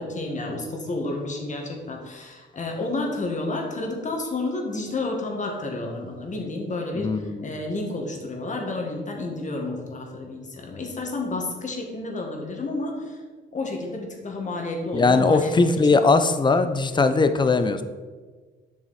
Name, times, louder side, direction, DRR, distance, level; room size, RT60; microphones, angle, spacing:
voice 1, 0.0-13.2 13.5-16.0, left 2 dB, 40° left, 1 dB, 1.8 m, -30 dB
voice 2, 7.0-7.4 14.9-17.8, left 3 dB, 25° left, 10 dB, 0.6 m, -20 dB
7.7 x 6.1 x 4.2 m, 1.4 s
cardioid pair, 90°, 20 cm